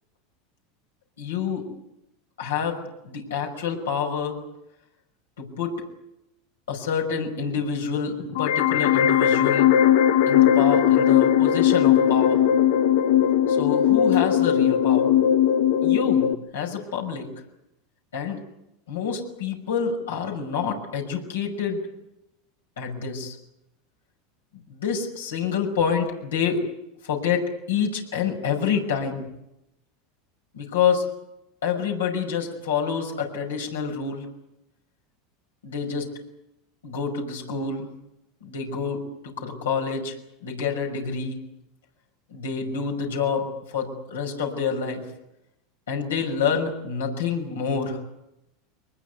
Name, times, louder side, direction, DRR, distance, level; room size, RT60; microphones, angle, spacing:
voice 1, 1.2-1.6 2.4-4.4 5.4-5.8 6.7-9.7 10.3-12.5 13.5-15.2 15.8-17.3 18.1-18.4 18.9-21.8 22.8-23.4 24.7-26.6 27.0-29.3 30.5-31.0 31.6-34.2 35.6-36.1 36.8-37.9 38.4-41.4 42.3-45.1 45.9-48.0, left 6 dB, 90° left, 1 dB, 5.8 m, -27 dB
sound 1, 8.3-16.3, left 10 dB, 70° left, 1.0 m, -19 dB
23.0 x 20.5 x 9.4 m, 0.86 s
hypercardioid pair, 100°, 0 cm